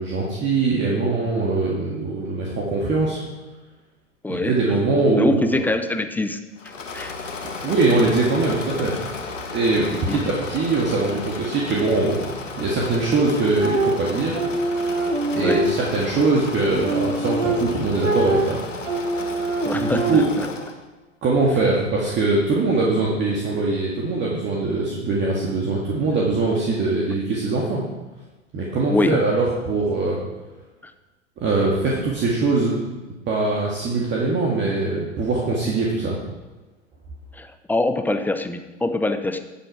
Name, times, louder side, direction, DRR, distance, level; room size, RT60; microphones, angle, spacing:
voice 1, 0.0-3.2 4.3-5.7 7.4-8.9 9.5-14.4 15.3-18.6 19.7-20.2 21.2-27.8 28.5-30.2 31.4-32.8 33.3-36.2, right 3 dB, 30° right, -3 dB, 1.9 m, -22 dB
voice 2, 5.2-6.4 6.9-7.2 9.8-10.3 15.4-15.6 19.6-20.5 28.9-29.2 37.3-39.4, left 2 dB, 5° left, 8 dB, 0.6 m, -24 dB
Engine / Mechanisms, 6.6-20.8, left 4 dB, 85° left, 1.4 m, -34 dB
sound 1, 13.6-16.1 16.6-20.5, right 2 dB, 90° right, 1.1 m, -24 dB
11.0 x 7.5 x 4.7 m, 1.2 s
figure-of-eight pair, 95°, 36 cm